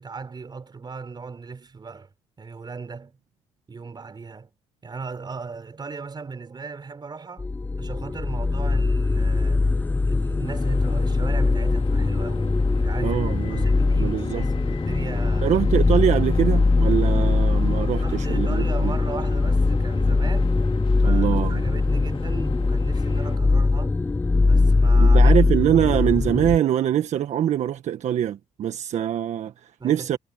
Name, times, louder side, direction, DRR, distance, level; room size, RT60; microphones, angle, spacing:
voice 1, 0.0-2.1 2.4-3.2 3.7-4.5 4.8-7.5 7.8-9.7 10.0-13.2 13.5-15.5 18.0-20.6 21.0-24.0 24.4-25.3 29.8-30.2, right 4 dB, 35° right, 5.1 m, -37 dB
sound 1, 7.4-26.6, left 3 dB, 15° left, 0.3 m, -21 dB
sound 2, 10.5-23.4, left 6 dB, 45° left, 4.5 m, -40 dB
voice 2, 13.0-13.6 14.0-14.5 15.4-18.9 21.0-21.6 25.0-30.2, right 10 dB, 60° right, 1.4 m, -23 dB
supercardioid pair, 75°, 13 cm